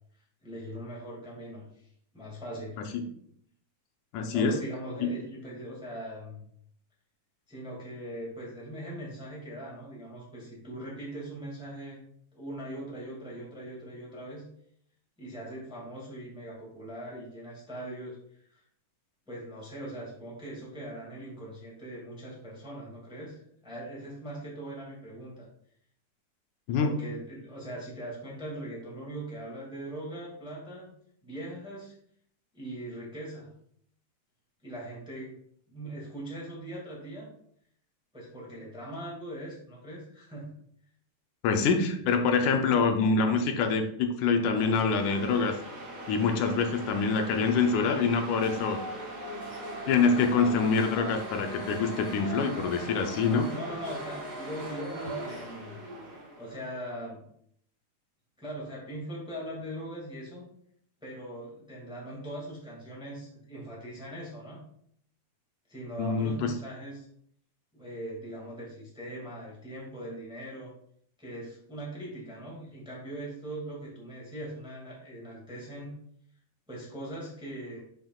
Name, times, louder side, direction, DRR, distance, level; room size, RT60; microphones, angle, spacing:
voice 1, 0.4-1.7 2.1-2.8 4.3-6.4 7.5-12.0 12.3-14.4 15.2-18.2 18.5-18.6 19.3-25.4 26.8-30.9 31.2-31.9 32.5-33.5 34.6-35.3 35.7-37.3 38.1-40.5 53.5-55.8 56.4-57.3 58.4-60.5 61.0-64.6 65.7-67.1 67.7-70.7 71.2-75.9 76.7-77.8, right 1 dB, ahead, -4 dB, 1.5 m, -40 dB
voice 2, 4.1-4.6 5.0-5.1 26.7-26.9 41.4-45.6 46.1-48.8 49.9-53.5 66.0-66.5, left 5 dB, 85° left, 5 dB, 2.2 m, -25 dB
sound 1, 44.5-56.8, right 1 dB, 55° right, 2.4 m, -40 dB
6.8 x 5.8 x 2.4 m, 0.66 s
omnidirectional pair, 3.4 m